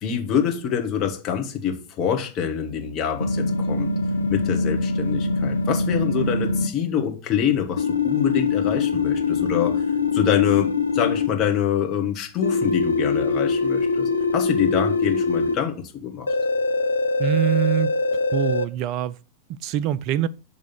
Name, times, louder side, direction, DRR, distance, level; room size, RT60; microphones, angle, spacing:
voice 1, 0.0-3.9 4.3-9.8 10.1-16.3, left 8 dB, 35° left, 1.4 m, -25 dB
sound 1, 3.2-6.7 7.8-11.3 12.4-15.6 16.3-18.7, left 3 dB, 80° left, 0.6 m, -23 dB
voice 2, 17.2-17.9 18.3-19.2 19.5-20.3, right 12 dB, 40° right, 0.3 m, -24 dB
6.6 x 3.5 x 6.0 m
figure-of-eight pair, 90°, 0 cm